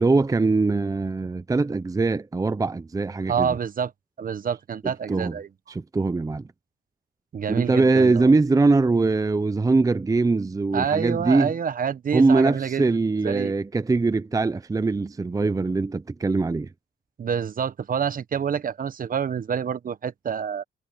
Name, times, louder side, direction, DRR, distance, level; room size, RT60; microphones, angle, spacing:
voice 1, 0.0-3.6 5.1-5.3 5.7-6.5 7.5-11.5 12.1-16.7, right 3 dB, 15° right, 0.7 m, -22 dB
voice 2, 3.3-3.9 4.2-5.5 7.3-8.3 10.7-12.8 13.2-13.5 17.2-20.6, right 7 dB, 45° right, 1.1 m, -27 dB
cardioid pair, 90°, 20 cm